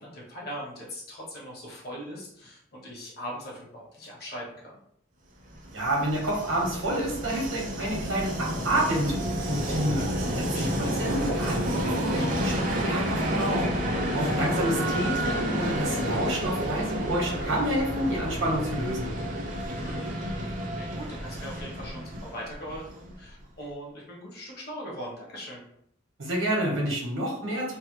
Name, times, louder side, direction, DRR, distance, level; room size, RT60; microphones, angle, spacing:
voice 1, 0.0-4.8 10.5-10.9 19.5-20.2 20.8-25.6, equal, 50° left, -3 dB, 1.0 m, -40 dB
Train, 5.5-23.3, equal, 40° right, 0.5 m, -30 dB
voice 2, 5.7-10.7 10.9-13.6 14.1-19.1 26.2-27.8, right 1 dB, 85° right, -3 dB, 1.1 m, -29 dB
3.2 x 2.0 x 3.0 m, 0.71 s
head